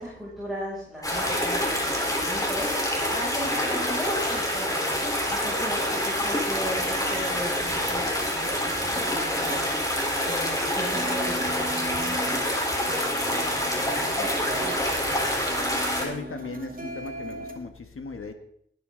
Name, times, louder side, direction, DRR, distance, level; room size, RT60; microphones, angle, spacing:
voice 1, 0.0-12.4 12.8-15.2, equal, ahead, -7 dB, 6.4 m, -37 dB
sound 1, 1.0-16.0, equal, 15° left, 3.8 m, -27 dB
sound 2, 3.9-17.6, right 1 dB, 40° right, 2.4 m, -41 dB
voice 2, 16.0-18.3, left 3 dB, 90° left, 6 dB, 1.4 m, -37 dB
19.0 x 9.6 x 3.9 m, 0.70 s
wide cardioid pair, 65°, 21 cm